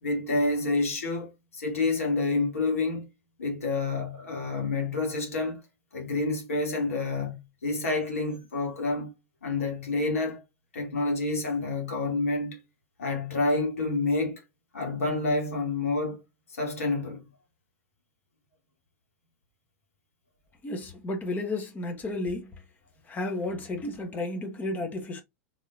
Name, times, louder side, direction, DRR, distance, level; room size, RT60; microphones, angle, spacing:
voice 1, 0.0-3.0 3.4-5.6 5.9-9.1 9.4-10.4 10.7-12.6 13.0-14.4 14.7-16.2 16.6-17.2, left 3 dB, 70° left, 1.9 m, -28 dB
voice 2, 20.6-22.5 23.1-25.2, left 2 dB, 20° left, 1.3 m, -32 dB
3.5 x 3.3 x 2.7 m
figure-of-eight pair, 90°, 8 cm